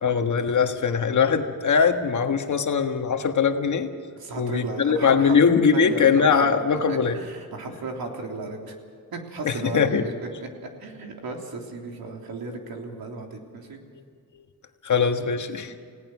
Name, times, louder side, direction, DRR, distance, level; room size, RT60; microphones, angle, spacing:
voice 1, 0.0-3.9 4.4-7.2 9.4-10.0 14.8-15.8, left 6 dB, 55° left, 5 dB, 1.6 m, -21 dB
voice 2, 4.1-5.4 5.7-6.1 6.4-8.7 9.1-10.1 10.4-10.5 10.8-13.8 15.7-15.8, right 3 dB, 85° right, 2 dB, 3.5 m, -35 dB
29.5 x 17.5 x 6.2 m, 2.1 s
wide cardioid pair, 165°, 36 cm